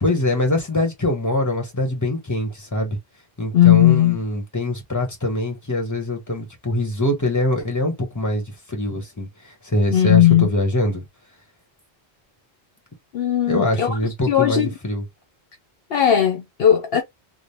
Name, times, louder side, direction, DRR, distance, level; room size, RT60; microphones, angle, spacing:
voice 1, 0.0-3.0 3.4-8.4 8.7-11.1 13.5-15.0, left 1 dB, 15° left, 1.3 m, -23 dB
voice 2, 3.5-4.2 9.9-10.5 13.1-14.0 14.3-14.7 15.9-17.0, left 11 dB, 65° left, 0.8 m, -16 dB
3.7 x 2.1 x 3.3 m
omnidirectional pair, 1.1 m